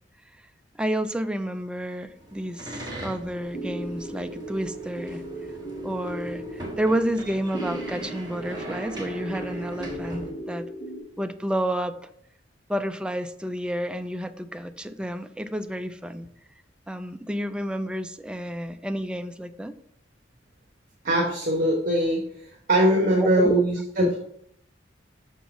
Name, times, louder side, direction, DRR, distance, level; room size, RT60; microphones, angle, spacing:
voice 1, 0.7-5.2 5.8-10.7 11.2-12.1 12.7-16.3 16.9-19.8 23.2-23.7 24.0-24.1, equal, 5° right, 9 dB, 0.3 m, -30 dB
sound 1, 2.0-10.3, right 1 dB, 25° right, 1.5 m, -40 dB
sound 2, 3.5-11.0, right 2 dB, 60° left, 1.6 m, -37 dB
voice 2, 21.0-22.2 22.7-24.2, right 1 dB, 50° right, 0 dB, 1.1 m, -21 dB
5.9 x 5.4 x 3.7 m, 0.71 s
head